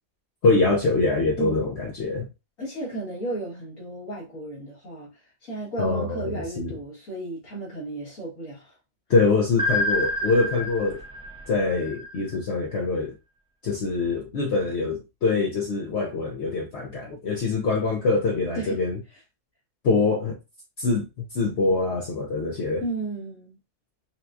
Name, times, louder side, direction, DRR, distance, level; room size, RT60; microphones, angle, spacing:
voice 1, 0.4-2.3 5.8-6.7 9.1-11.0 11.5-13.1 13.6-19.0 19.8-20.4 20.8-21.1 21.3-22.8, left 3 dB, 60° left, 0.9 m, -24 dB
voice 2, 1.4-1.7 2.6-5.1 5.4-8.7 18.5-18.8 19.1-19.2 22.8-23.6, right 2 dB, 80° left, 2.1 m, -34 dB
sound 1, 9.6-12.5, left 1 dB, 5° right, 0.4 m, -28 dB
5.6 x 2.3 x 2.6 m
omnidirectional pair, 1.4 m